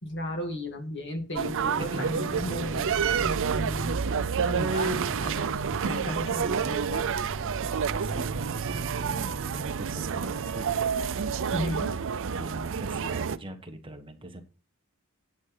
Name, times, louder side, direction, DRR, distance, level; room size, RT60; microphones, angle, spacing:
voice 1, 0.0-4.0 4.5-5.5 5.8-7.2 11.5-12.0, left 1 dB, 55° left, 5 dB, 2.3 m, -35 dB
voice 2, 1.4-2.1 7.9-10.8 12.3-14.4, right 1 dB, 25° right, 5 dB, 1.3 m, -41 dB
sound 1, 1.4-13.4, right 6 dB, 60° right, 0.5 m, -29 dB
sound 2, 2.0-13.1, left 1 dB, 25° left, 1.2 m, -45 dB
9.4 x 8.7 x 3.9 m, 0.34 s
head